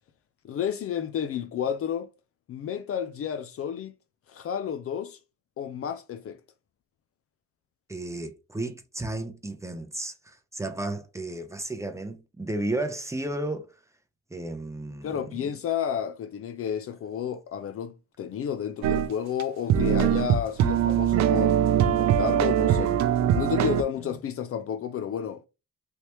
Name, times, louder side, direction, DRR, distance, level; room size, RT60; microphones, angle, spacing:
voice 1, 0.4-2.1 2.5-3.9 4.3-5.2 5.6-6.4 15.0-23.0 23.3-25.5, left 8 dB, 50° left, 0.4 m, -31 dB
voice 2, 7.9-13.8 14.3-15.1, right 2 dB, 10° right, 0.6 m, -33 dB
sound 1, 18.8-19.1 19.4-19.5 19.7-23.8, right 9 dB, 65° right, 0.5 m, -22 dB
3.3 x 2.8 x 2.9 m
cardioid pair, 90°, 30 cm